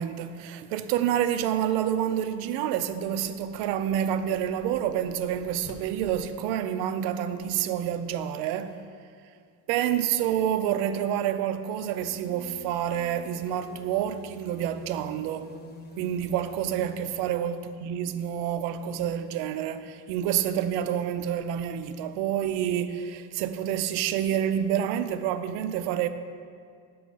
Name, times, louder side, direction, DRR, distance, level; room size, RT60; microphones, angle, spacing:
voice 1, 0.0-8.8 9.7-15.5 16.0-26.1, right 10 dB, 85° right, 0.5 m, -28 dB
sound 1, 2.9-6.2, left 2 dB, 90° left, 0.9 m, -51 dB
sound 2, 12.0-17.3, right 1 dB, 25° left, 0.6 m, -48 dB
5.9 x 5.5 x 5.2 m
cardioid pair, 135°, 39 cm